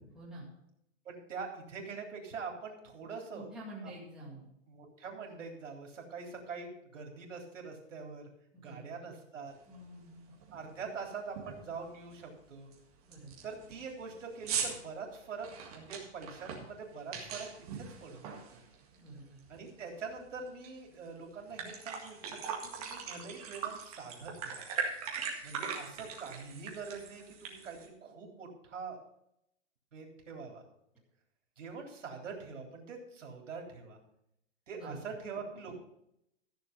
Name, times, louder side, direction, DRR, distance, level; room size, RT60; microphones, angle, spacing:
voice 1, 0.1-0.5 3.3-4.5 8.5-9.1 9.7-10.2 13.0-13.3 18.9-19.4 34.8-35.0, right 1 dB, ahead, -8 dB, 2.2 m, -48 dB
voice 2, 1.0-3.5 4.7-8.3 8.6-9.5 10.5-12.7 13.4-17.5 17.7-18.6 19.5-24.6 25.4-29.0 29.9-30.6 31.6-34.0 34.7-35.8, right 5 dB, 85° right, 1 dB, 3.5 m, -44 dB
sound 1, 9.7-9.8 10.3-10.6 10.9-11.0 11.4-11.7 12.1-12.2 12.7-12.8 13.1-19.1 19.4-20.7 21.1-21.2 21.4-27.9, right 6 dB, 30° right, 1.9 m, -40 dB
14.5 x 7.0 x 5.2 m, 0.78 s
hypercardioid pair, 175°, 37 cm